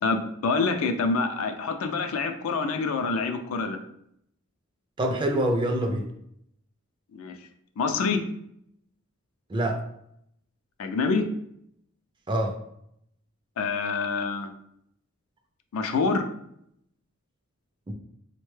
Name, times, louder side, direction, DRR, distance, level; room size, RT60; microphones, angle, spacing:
voice 1, 0.0-3.8 7.1-7.4 7.8-8.2 10.8-11.3 13.6-14.5 15.7-16.3, left 4 dB, 70° left, 7 dB, 0.4 m, -26 dB
voice 2, 5.0-6.1 9.5-9.8 12.3-12.5 17.9-18.0, right 1 dB, 20° right, 3 dB, 0.3 m, -25 dB
3.5 x 2.1 x 3.1 m, 0.72 s
head